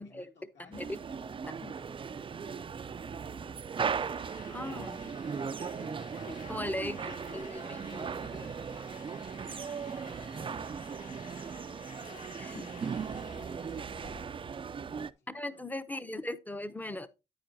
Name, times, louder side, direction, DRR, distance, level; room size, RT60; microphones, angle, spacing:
voice 1, 0.0-3.6 4.7-5.0 5.7-15.7, left 4 dB, 65° left, 2.1 m, -61 dB
sound 1, 0.7-15.1, right 6 dB, 25° right, 0.4 m, -38 dB
sound 2, 3.8-14.2, left 4 dB, 40° left, 1.8 m, -53 dB
voice 2, 4.5-5.1 5.6-5.9 6.3-8.5 12.4-12.6 15.3-17.1, left 1 dB, 10° left, 0.6 m, -39 dB
10.0 x 8.6 x 2.6 m
cardioid pair, 90°, 20 cm